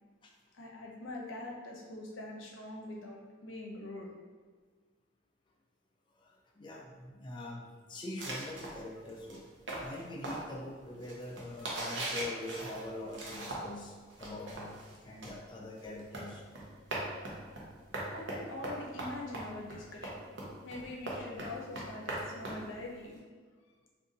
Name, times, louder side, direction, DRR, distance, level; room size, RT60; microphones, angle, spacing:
voice 1, 0.5-4.1 18.1-20.2 20.6-23.1, left 2 dB, 75° left, -1 dB, 0.7 m, -43 dB
voice 2, 6.1-9.5 9.8-16.4, left 1 dB, 25° left, -1 dB, 0.3 m, -44 dB
sound 1, 8.2-13.8 14.1-23.2, right 1 dB, 65° right, 0.7 m, -41 dB
2.6 x 2.6 x 3.7 m, 1.5 s
head